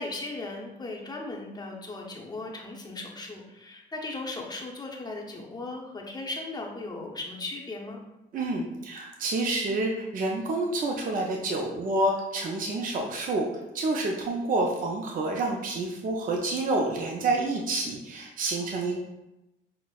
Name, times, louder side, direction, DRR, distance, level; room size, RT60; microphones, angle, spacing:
voice 1, 0.0-8.0 18.6-18.9, left 2 dB, 20° left, -1 dB, 0.7 m, -37 dB
voice 2, 8.3-13.5 13.7-19.0, right 2 dB, 45° right, 0 dB, 0.5 m, -28 dB
5.7 x 2.0 x 2.3 m, 0.96 s
cardioid pair, 90°, 20 cm